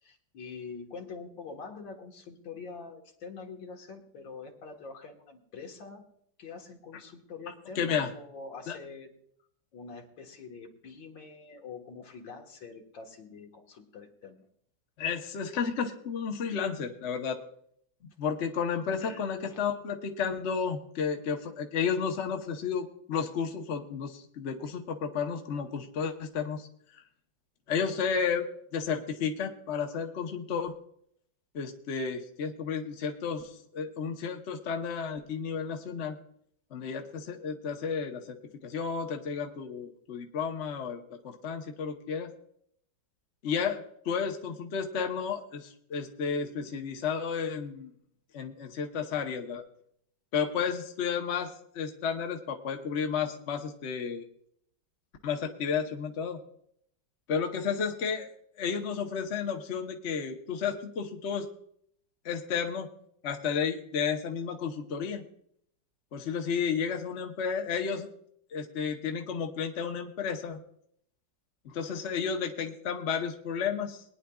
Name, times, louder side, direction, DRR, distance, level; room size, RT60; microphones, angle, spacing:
voice 1, 0.0-6.0 6.4-9.1 9.7-14.4 19.0-19.2, left 4 dB, 75° left, 2 dB, 2.2 m, -45 dB
voice 2, 7.7-8.1 8.7-8.8 15.0-17.4 18.2-26.7 27.7-30.7 31.5-36.2 36.7-38.4 38.6-42.3 43.4-47.9 48.3-49.6 50.3-54.3 55.2-56.4 57.3-58.3 58.6-61.5 62.2-62.9 63.2-65.2 66.1-68.1 68.5-70.6 71.6-74.0, left 6 dB, 45° left, 3 dB, 1.0 m, -32 dB
22.0 x 9.9 x 2.3 m, 0.68 s
omnidirectional pair, 2.1 m